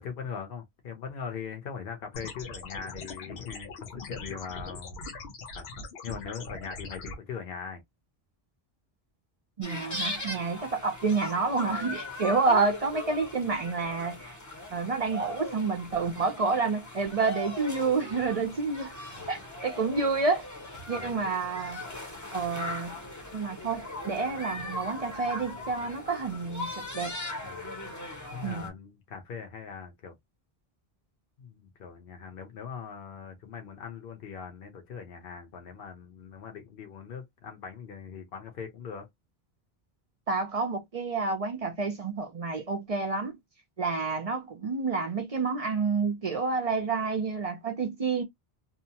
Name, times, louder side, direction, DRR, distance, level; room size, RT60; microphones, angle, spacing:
voice 1, 0.0-5.0 5.5-7.8 19.1-19.4 20.9-21.1 27.4-27.7 28.3-30.2 31.4-39.1, left 6 dB, 65° left, 0.9 m, -41 dB
sound 1, 2.1-7.1, left 3 dB, 90° left, 1.0 m, -42 dB
sound 2, 9.6-28.7, left 1 dB, 20° left, 0.6 m, -39 dB
voice 2, 9.6-14.4 14.7-18.9 19.3-20.5 20.9-21.8 22.3-23.0 23.3-27.2 28.4-28.6 40.3-43.4 43.8-48.2, right 4 dB, 45° right, 0.5 m, -29 dB
2.8 x 2.1 x 2.7 m
omnidirectional pair, 1.0 m